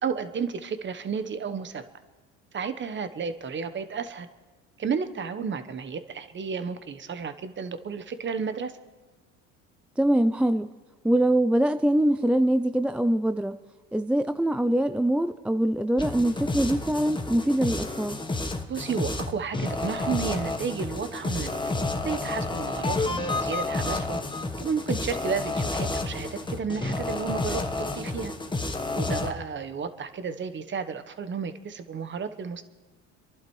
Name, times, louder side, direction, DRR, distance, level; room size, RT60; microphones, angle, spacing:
voice 1, 0.0-1.8 2.5-4.3 4.8-8.7 18.7-24.2 24.6-28.3 28.9-32.6, right 6 dB, 35° right, 1.1 m, -32 dB
voice 2, 10.0-10.7 11.0-13.5 13.9-18.2, right 1 dB, 5° right, 0.3 m, -23 dB
sound 1, 16.0-29.3, left 2 dB, 15° left, 1.2 m, -30 dB
28.5 x 11.5 x 3.2 m
supercardioid pair, 80°, 34 cm